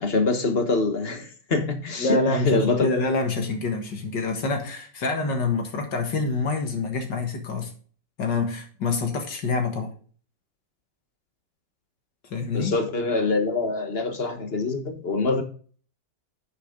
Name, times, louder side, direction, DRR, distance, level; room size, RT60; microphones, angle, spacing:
voice 1, 0.0-2.9 12.5-15.4, left 3 dB, 35° left, 6 dB, 1.3 m, -24 dB
voice 2, 2.0-7.7 8.2-9.9 12.3-12.7, left 3 dB, 70° left, 4 dB, 2.3 m, -26 dB
9.7 x 6.6 x 3.8 m, 0.42 s
omnidirectional pair, 2.0 m